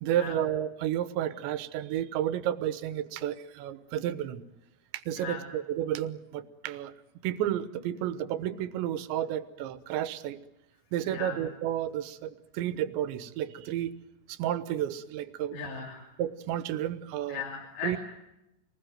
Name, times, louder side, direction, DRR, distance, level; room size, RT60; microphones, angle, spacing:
voice 1, 0.0-4.4 4.9-6.9 7.2-10.4 10.9-13.9 14.3-15.6 16.2-17.4 17.8-18.0, right 11 dB, 80° right, 13 dB, 3.3 m, -31 dB
voice 2, 5.2-5.5 11.1-11.4 15.5-16.1 17.3-18.0, left 6 dB, 75° left, -1 dB, 5.3 m, -37 dB
26.5 x 20.0 x 9.2 m, 0.90 s
omnidirectional pair, 5.1 m